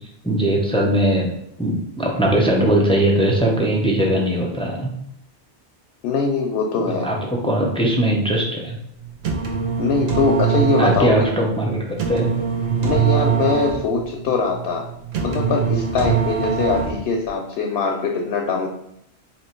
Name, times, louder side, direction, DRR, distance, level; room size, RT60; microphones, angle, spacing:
voice 1, 0.2-1.3 1.6-4.9 6.8-8.8 10.8-12.3, right 1 dB, 5° left, -2 dB, 0.4 m, -20 dB
voice 2, 6.0-7.1 9.8-11.3 12.8-14.8 15.2-18.7, left 4 dB, 70° left, 2 dB, 0.8 m, -22 dB
sound 1, 9.0-17.3, right 7 dB, 70° right, 0.9 m, -23 dB
2.9 x 2.9 x 4.3 m, 0.76 s
omnidirectional pair, 1.1 m